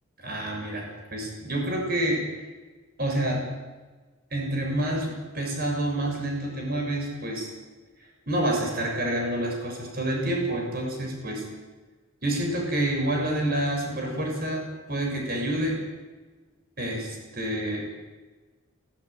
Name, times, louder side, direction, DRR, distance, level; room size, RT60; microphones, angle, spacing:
voice 1, 0.2-2.3 3.0-3.5 4.3-7.5 8.3-11.4 12.2-14.6 14.9-15.8 16.8-17.8, right 1 dB, 45° right, 1 dB, 7.0 m, -28 dB
23.5 x 15.0 x 9.6 m, 1.3 s
head